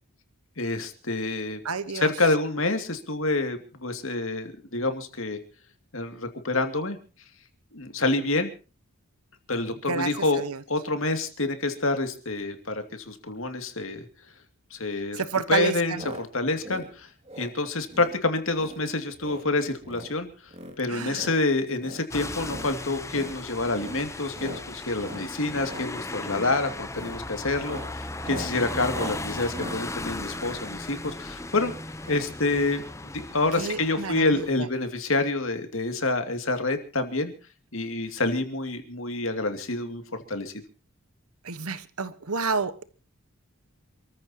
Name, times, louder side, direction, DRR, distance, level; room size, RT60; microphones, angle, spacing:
voice 1, 0.6-1.6 1.9-5.4 5.9-7.0 7.7-8.5 9.5-14.1 14.7-15.2 15.5-17.1 17.4-20.5 20.8-31.8 32.1-32.8 33.1-37.3 37.7-40.0 40.3-40.5, left 2 dB, 65° left, 2.5 m, -27 dB
voice 2, 1.6-2.1 9.9-10.1 10.4-10.6 15.1-16.0 20.9-21.3 33.6-34.4 41.4-42.8, right 4 dB, 85° right, 1.3 m, -29 dB
sound 1, 15.9-16.2 16.5-16.9 17.2-17.5 17.9-18.2 18.5-18.8 19.1-19.5 19.8-20.1 20.5-21.4 21.8-22.0 22.4-22.7 23.1-23.4 23.7-24.0 24.3-24.6 25.0-25.3 25.6-25.9 26.3-26.5 26.9-27.2 27.5-31.2 32.0-32.3 32.6-32.7 32.8-32.9, equal, 25° right, 2.6 m, -41 dB
sound 2, 22.1-34.5, left 2 dB, 15° left, 0.8 m, -37 dB
28.0 x 14.5 x 3.0 m
head